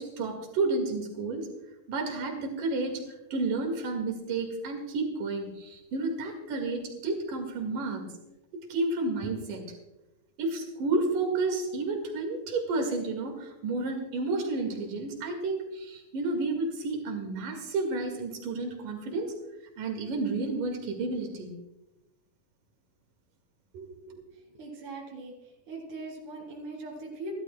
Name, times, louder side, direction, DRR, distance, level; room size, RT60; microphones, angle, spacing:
voice 1, 0.0-1.5 1.9-8.1 8.7-9.7 10.4-19.3 19.8-21.5 23.7-24.2, right 3 dB, 90° right, 3 dB, 3.5 m, -31 dB
voice 2, 24.5-27.3, right 2 dB, 70° right, -2 dB, 4.7 m, -41 dB
30.0 x 12.0 x 2.2 m, 0.98 s
omnidirectional pair, 3.7 m